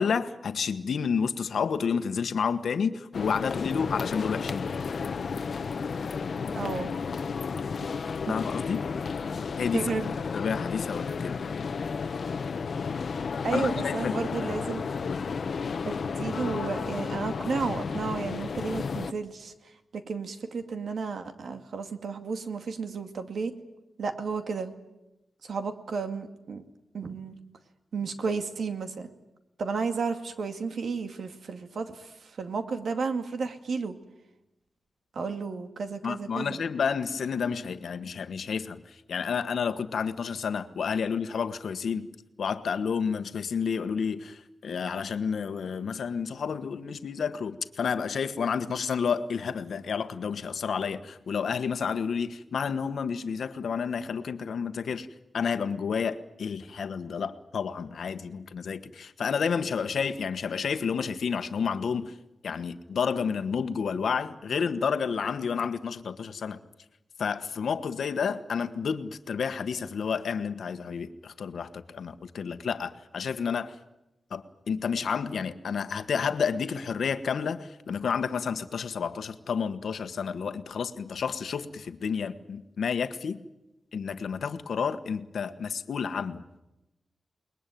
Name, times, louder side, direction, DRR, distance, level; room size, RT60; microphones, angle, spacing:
voice 1, 0.0-4.7 8.3-8.8 9.6-11.4 13.5-14.2 15.0-15.2 36.0-42.1 42.4-55.1 55.3-62.1 62.4-66.6 67.2-73.7 74.3-83.4 83.9-86.4, left 6 dB, 85° left, 11 dB, 1.4 m, -30 dB
sound 1, 3.1-19.1, left 5 dB, 60° left, 0.9 m, -32 dB
voice 2, 6.5-6.9 8.0-8.3 9.7-10.1 13.4-14.8 15.9-19.5 19.9-23.5 24.0-24.7 25.4-26.6 26.9-27.4 27.9-29.1 29.6-33.9 35.1-36.6, right 4 dB, 75° right, 7 dB, 2.2 m, -32 dB
29.0 x 21.0 x 9.3 m, 0.98 s
wide cardioid pair, 150°, 0 cm